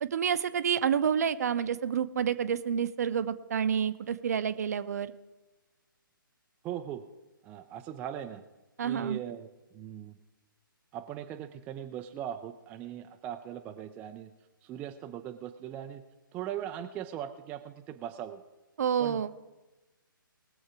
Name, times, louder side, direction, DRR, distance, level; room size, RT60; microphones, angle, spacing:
voice 1, 0.0-5.1 8.8-9.2 18.8-19.3, right 8 dB, 45° right, 13 dB, 0.7 m, -29 dB
voice 2, 6.6-7.0 7.4-8.4 8.8-10.1 10.9-14.3 14.6-16.0 16.3-18.4 19.0-19.2, right 10 dB, 10° right, 7 dB, 0.4 m, -39 dB
20.5 x 7.2 x 4.8 m, 1.1 s
figure-of-eight pair, 135°, 12 cm